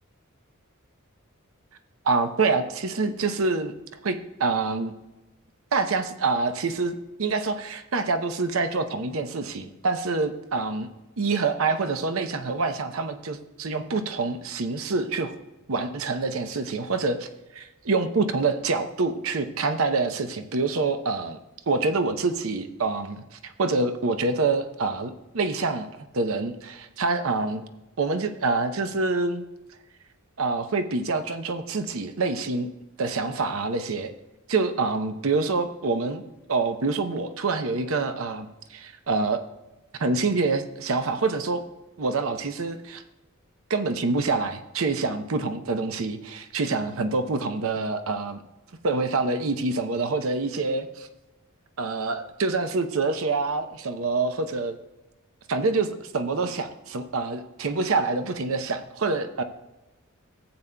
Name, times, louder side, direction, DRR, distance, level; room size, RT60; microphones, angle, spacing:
voice 1, 2.0-3.7 4.0-4.9 5.7-10.9 11.2-15.4 15.7-17.3 17.6-21.4 21.7-25.9 26.1-27.6 28.0-29.4 30.4-32.7 33.0-34.1 34.5-36.2 36.5-39.4 39.9-41.6 42.0-43.0 43.7-48.4 48.8-51.1 51.8-54.8 55.5-59.4, right 3 dB, 75° right, 9 dB, 0.7 m, -26 dB
14.5 x 8.7 x 2.2 m, 1.0 s
head